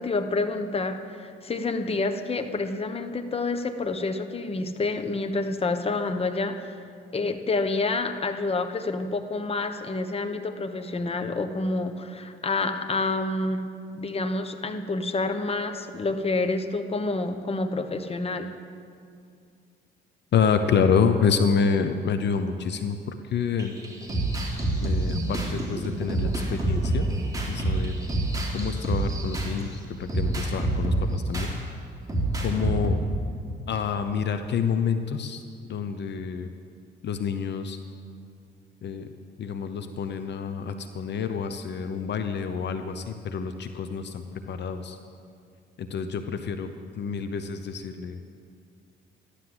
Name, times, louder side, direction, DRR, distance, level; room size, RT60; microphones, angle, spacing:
voice 1, 0.0-6.8 7.1-13.6 14.0-18.5, left 3 dB, 30° left, 8 dB, 1.1 m, -28 dB
voice 2, 20.3-23.8 24.8-27.1 27.5-27.9 28.5-31.5 32.4-33.0 33.7-35.4 35.7-36.5 37.0-37.8 38.8-39.1 39.4-45.0 45.8-48.2, left 6 dB, 60° left, 8 dB, 0.8 m, -28 dB
sound 1, 23.6-29.6 30.1-31.5 32.1-32.9, right 2 dB, 20° right, 3.6 m, -27 dB
13.5 x 12.0 x 7.8 m, 2.3 s
cardioid pair, 90°, 20 cm